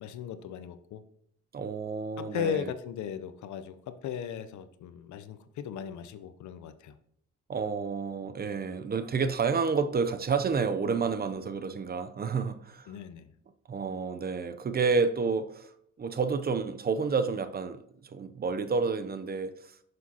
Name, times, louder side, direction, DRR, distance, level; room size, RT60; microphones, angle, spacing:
voice 1, 0.0-1.0 2.2-7.0 12.9-13.3, left 8 dB, 70° left, 12 dB, 0.6 m, -37 dB
voice 2, 1.5-2.7 7.5-13.0 13.7-15.7 16.0-19.7, right 5 dB, 30° right, 11 dB, 0.5 m, -30 dB
7.2 x 6.2 x 2.8 m, 0.70 s
cardioid pair, 90°, 30 cm